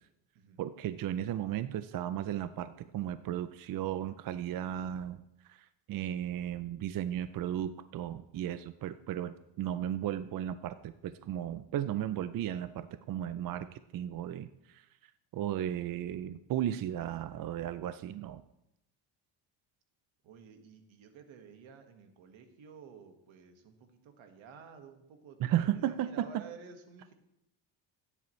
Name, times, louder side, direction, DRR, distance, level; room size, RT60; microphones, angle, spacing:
voice 1, 0.6-5.2 5.5-5.6 5.9-14.8 15.3-18.4 25.4-26.4, right 11 dB, 45° right, 12 dB, 0.5 m, -35 dB
voice 2, 20.2-27.1, right 5 dB, 75° right, 6 dB, 1.7 m, -52 dB
15.0 x 9.9 x 3.2 m, 0.86 s
cardioid pair, 125°, 47 cm